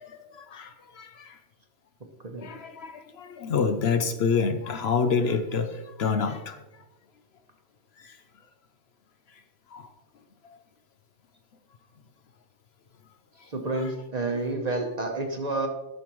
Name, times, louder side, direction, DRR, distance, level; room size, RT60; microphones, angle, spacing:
voice 1, 0.0-1.4 2.4-6.6 8.0-8.2 9.7-9.9 10.4-10.6 13.7-13.9, left 5 dB, 65° left, 0.8 m, -28 dB
voice 2, 13.5-15.7, right 2 dB, 35° right, 0.9 m, -29 dB
12.0 x 6.4 x 3.0 m
omnidirectional pair, 1.3 m